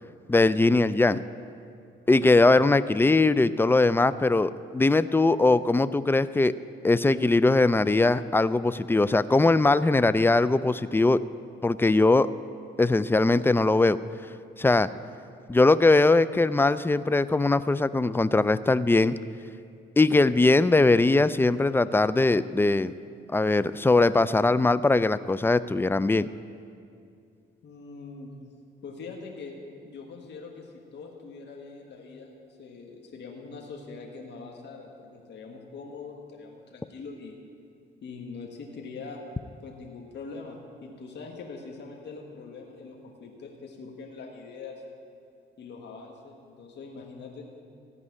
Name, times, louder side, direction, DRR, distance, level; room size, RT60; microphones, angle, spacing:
voice 1, 0.3-1.2 2.1-6.5 6.8-11.2 11.6-12.3 12.8-14.0 14.6-14.9 15.5-19.2 20.0-22.9 23.3-26.3, left 2 dB, 10° left, 15 dB, 0.4 m, -21 dB
voice 2, 27.6-28.3 28.8-29.5 29.8-32.3 32.6-37.3 38.0-39.2 39.6-44.8 45.6-47.5, left 4 dB, 60° left, 0 dB, 1.6 m, -42 dB
15.5 x 5.4 x 9.7 m, 2.3 s
cardioid pair, 90°, 20 cm